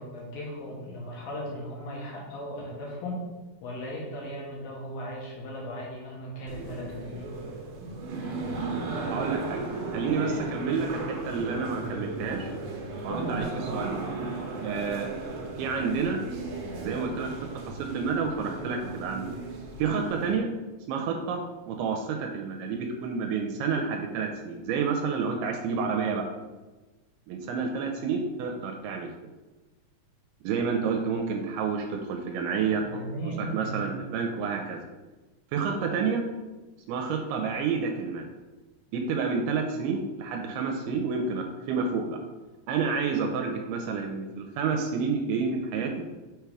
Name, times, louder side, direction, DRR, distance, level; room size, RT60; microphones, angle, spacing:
voice 1, 0.0-3.2 3.6-7.3 13.1-13.7 32.8-33.8, equal, 70° left, -4 dB, 2.7 m, -37 dB
sound 1, 6.5-20.4, right 3 dB, 70° right, 2.2 m, -35 dB
voice 2, 9.1-9.6 9.9-12.5 13.0-13.5 13.7-13.9 14.6-15.1 15.6-16.2 16.8-19.5 19.8-20.5 20.9-21.4 21.7-26.3 27.3-29.1 30.4-32.8 33.2-34.8 35.5-36.2 36.9-38.3 38.9-42.2 42.7-46.1, right 5 dB, 85° right, 2 dB, 2.5 m, -29 dB
6.3 x 3.4 x 4.7 m, 1.2 s
omnidirectional pair, 4.5 m